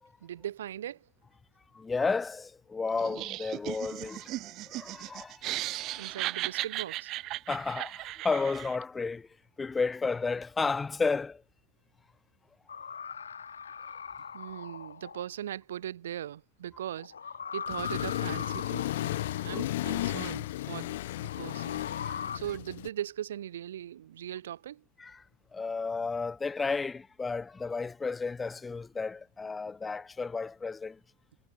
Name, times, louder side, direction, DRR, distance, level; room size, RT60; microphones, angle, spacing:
voice 1, 0.2-1.1 5.9-7.1 14.3-17.1 17.5-21.8 22.3-24.8, right 11 dB, 60° right, 6.0 m, -39 dB
voice 2, 1.7-6.0 7.5-9.3 9.6-11.4 19.5-19.6 22.0-22.2 25.0-25.2 25.5-31.0, left 4 dB, 15° left, 1.8 m, -33 dB
Laughter, 3.0-8.8, right 17 dB, 35° right, 3.6 m, -36 dB
sound 1, 12.7-15.2 17.0-19.6 21.2-22.4, left 6 dB, 70° left, 6.3 m, -40 dB
Accelerating revving vroom, 17.7-22.9, left 15 dB, 55° left, 1.5 m, -34 dB
figure-of-eight pair, 90°, 0 cm